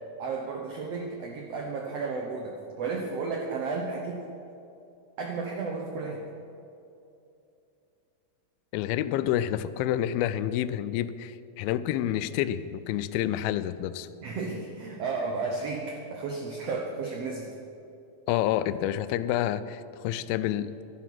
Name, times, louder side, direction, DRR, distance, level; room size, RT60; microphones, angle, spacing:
voice 1, 0.2-4.2 5.2-6.2 14.2-17.5, right 4 dB, 80° right, 1 dB, 1.4 m, -33 dB
voice 2, 8.7-14.1 18.3-20.7, left 12 dB, 90° left, 13 dB, 2.4 m, -28 dB
12.0 x 11.5 x 5.9 m, 2.7 s
omnidirectional pair, 4.2 m